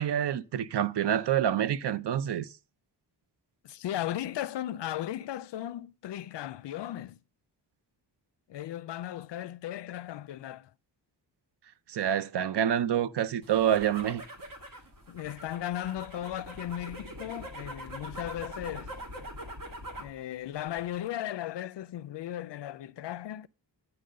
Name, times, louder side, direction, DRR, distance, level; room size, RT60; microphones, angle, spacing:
voice 1, 0.0-2.5 11.9-14.2, right 9 dB, 65° right, 0.6 m, -27 dB
voice 2, 3.6-7.2 8.5-10.7 15.1-19.0 20.0-23.5, left 12 dB, 70° left, 0.5 m, -36 dB
sound 1, 13.4-20.2 20.5-21.1, right 1 dB, 45° right, 1.9 m, -43 dB
9.0 x 3.9 x 6.5 m
wide cardioid pair, 110°, 44 cm